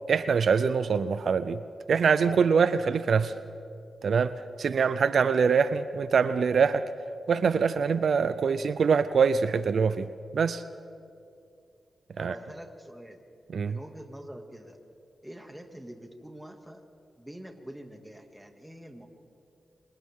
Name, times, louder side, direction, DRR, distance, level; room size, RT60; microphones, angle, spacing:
voice 1, 0.1-1.6 1.9-3.3 4.0-6.8 7.3-10.6 12.2-12.3 13.5-13.8, right 6 dB, 75° right, 13 dB, 0.5 m, -24 dB
voice 2, 12.2-13.2 13.6-14.8 15.2-16.8 17.2-19.1, right 1 dB, 5° right, 4 dB, 2.3 m, -45 dB
27.0 x 26.0 x 3.7 m, 2.5 s
cardioid pair, 60°, 0 cm